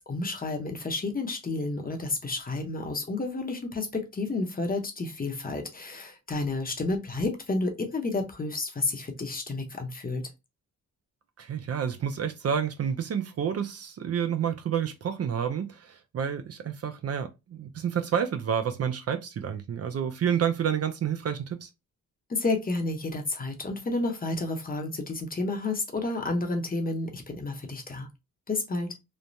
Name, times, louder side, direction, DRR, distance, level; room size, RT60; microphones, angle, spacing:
voice 1, 0.0-10.2 22.3-28.1 28.5-28.9, left 3 dB, 25° left, 0.7 m, -31 dB
voice 2, 11.4-21.7, right 8 dB, 50° right, 0.4 m, -29 dB
3.1 x 2.1 x 2.5 m
cardioid pair, 100°, 32 cm